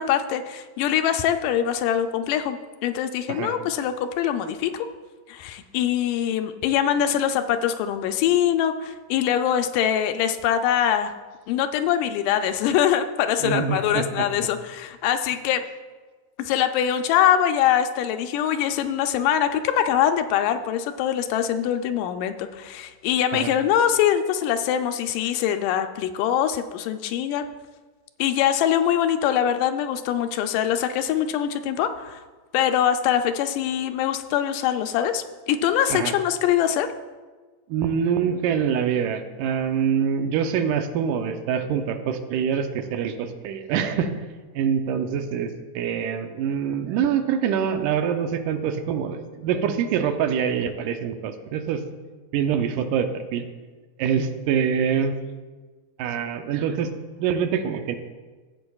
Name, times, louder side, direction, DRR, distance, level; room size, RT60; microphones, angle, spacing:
voice 1, 0.0-2.6 2.8-4.9 5.3-11.1 11.5-15.7 16.4-27.5 28.2-32.2 32.5-36.9, left 10 dB, 85° left, 8 dB, 2.1 m, -23 dB
voice 2, 13.4-14.3 23.3-23.5 35.9-36.1 37.7-44.2 44.6-51.8 52.3-53.5 54.0-55.2 56.0-56.9 57.2-58.0, right 7 dB, 85° right, 7 dB, 2.2 m, -25 dB
14.0 x 8.1 x 2.3 m, 1.3 s
omnidirectional pair, 3.7 m